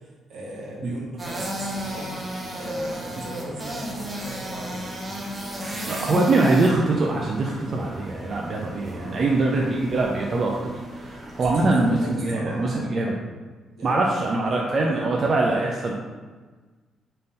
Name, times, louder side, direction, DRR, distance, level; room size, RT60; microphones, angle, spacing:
voice 1, 0.0-2.2 2.5-5.0 5.6-6.0 8.8-9.3 11.3-13.0 13.7-14.0 14.2-15.0, right 1 dB, 80° right, -3 dB, 1.1 m, -38 dB
sound 1, 1.2-12.1, equal, 25° right, 0.9 m, -34 dB
voice 2, 5.9-13.1 13.8-15.9, right 2 dB, 45° right, -2 dB, 0.5 m, -23 dB
3.7 x 2.7 x 3.9 m, 1.3 s
cardioid pair, 90°, 0 cm